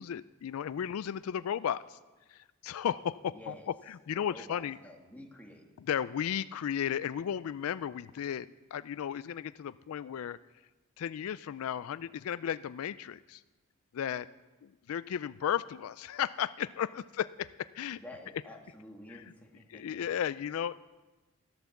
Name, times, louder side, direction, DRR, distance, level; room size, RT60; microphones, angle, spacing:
voice 1, 0.0-2.0 2.3-4.8 5.8-10.4 11.0-13.4 13.9-14.3 14.6-18.0 19.1-19.2 19.7-20.8, left 9 dB, 80° left, 16 dB, 0.3 m, -35 dB
voice 2, 3.3-3.7 4.1-5.7 17.9-20.1, left 1 dB, 5° left, 0 dB, 1.8 m, -49 dB
13.5 x 11.5 x 7.1 m, 1.2 s
head